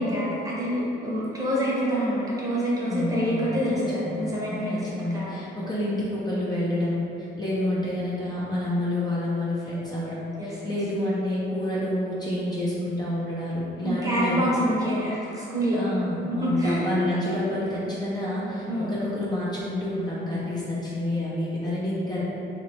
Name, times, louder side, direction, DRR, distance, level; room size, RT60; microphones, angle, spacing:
voice 1, 0.0-5.5 10.4-10.8 13.8-15.8 16.2-16.9 18.7-19.0, equal, 20° right, -7 dB, 1.0 m, -27 dB
voice 2, 2.8-3.5 4.0-4.2 4.5-7.0 7.4-14.4 15.7-22.2, left 1 dB, 20° left, -9 dB, 0.6 m, -28 dB
3.0 x 2.8 x 3.0 m, 2.9 s
cardioid pair, 90°, 20 cm